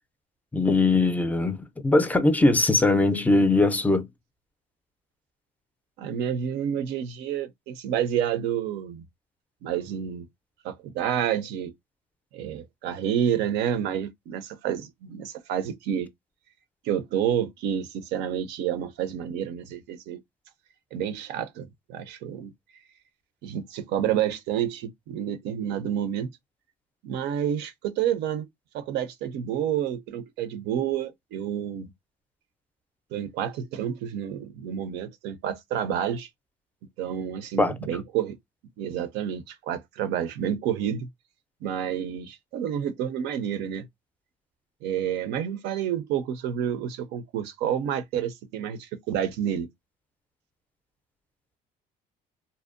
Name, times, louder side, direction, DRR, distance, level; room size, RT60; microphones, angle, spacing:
voice 1, 0.5-4.1 37.6-37.8, left 2 dB, 10° left, 0.4 m, -21 dB
voice 2, 6.0-9.0 9.6-10.3 10.6-11.7 12.3-16.1 16.8-20.2 20.9-22.5 23.4-26.3 27.0-28.5 28.7-31.9 33.1-36.3 37.0-38.4 38.8-41.1 41.6-43.9 44.8-49.7, right 9 dB, 85° right, 0.5 m, -29 dB
2.6 x 2.0 x 2.4 m
cardioid pair, 110°, 17 cm